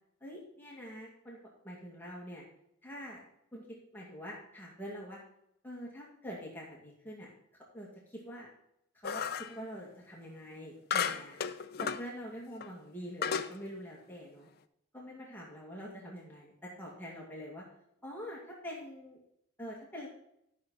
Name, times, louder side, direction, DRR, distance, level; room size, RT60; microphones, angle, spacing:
voice 1, 0.2-1.4 1.6-2.5 2.8-3.2 3.5-5.2 5.6-7.3 7.7-8.5 9.0-14.5 14.9-17.7 18.0-19.2 19.6-20.1, equal, 10° left, -4 dB, 2.1 m, -45 dB
sound 1, 9.0-9.6 10.9-12.1 12.6-12.7 13.2-13.5, left 7 dB, 45° left, 0.5 m, -33 dB
12.0 x 6.4 x 4.1 m, 0.76 s
head